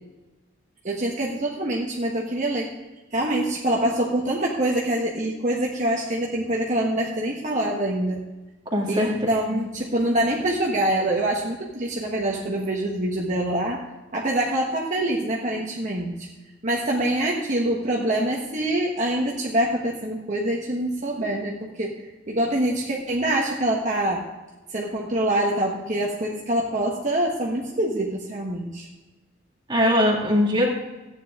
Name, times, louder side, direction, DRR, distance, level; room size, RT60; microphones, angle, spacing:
voice 1, 0.8-2.7 3.1-8.2 8.9-13.8 14.1-16.3 16.6-21.9 22.3-24.2 24.7-28.9, right 1 dB, 40° right, -2 dB, 1.3 m, -25 dB
voice 2, 8.7-9.1 9.5-9.6 29.7-30.7, equal, 25° right, -1 dB, 2.0 m, -21 dB
14.0 x 9.4 x 3.7 m, 1.1 s
head